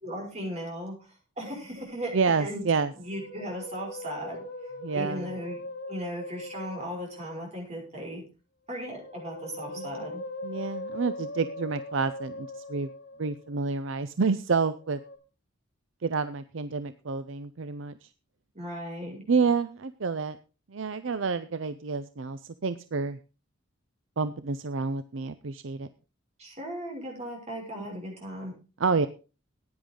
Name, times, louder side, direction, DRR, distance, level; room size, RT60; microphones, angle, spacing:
voice 1, 0.0-2.1 2.4-2.6 3.0-5.6 5.9-8.2 8.7-10.2 18.5-19.2 26.4-28.5, equal, 35° right, -1 dB, 6.0 m, -37 dB
voice 2, 2.1-2.9 4.8-5.3 9.8-10.1 10.4-12.9 13.2-15.0 16.0-17.9 19.3-20.4 20.7-23.2 24.2-25.9 28.8-29.1, right 4 dB, 65° right, 12 dB, 0.6 m, -29 dB
Musical instrument, 2.8-7.5 8.8-13.6 14.7-15.2, left 1 dB, 50° left, 5.1 m, -40 dB
15.5 x 9.9 x 3.8 m, 0.33 s
head